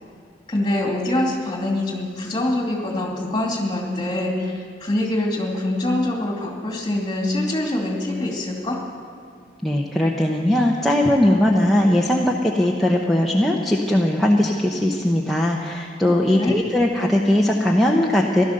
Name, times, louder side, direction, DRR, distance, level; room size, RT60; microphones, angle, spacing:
voice 1, 0.5-8.8 16.0-16.5, left 1 dB, 25° left, 0 dB, 2.4 m, -24 dB
voice 2, 9.6-18.4, left 1 dB, ahead, -3 dB, 0.8 m, -19 dB
16.0 x 12.0 x 6.5 m, 2.3 s
head